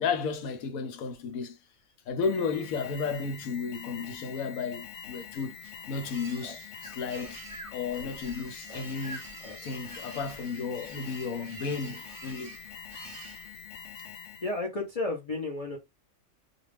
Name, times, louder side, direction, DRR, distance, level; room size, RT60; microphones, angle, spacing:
voice 1, 0.0-1.6 2.1-5.5 5.9-7.4 7.7-9.2 9.6-12.6, left 5 dB, 85° left, 1.1 m, -33 dB
Alarm, 2.2-14.6, left 7 dB, 65° left, 0.9 m, -45 dB
sound 1, 5.0-13.9, right 4 dB, 70° right, 0.3 m, -50 dB
Breathing, 6.4-10.1, right 1 dB, 30° left, 0.8 m, -46 dB
voice 2, 14.4-15.8, left 2 dB, 45° left, 0.5 m, -32 dB
2.5 x 2.3 x 3.2 m
omnidirectional pair, 1.4 m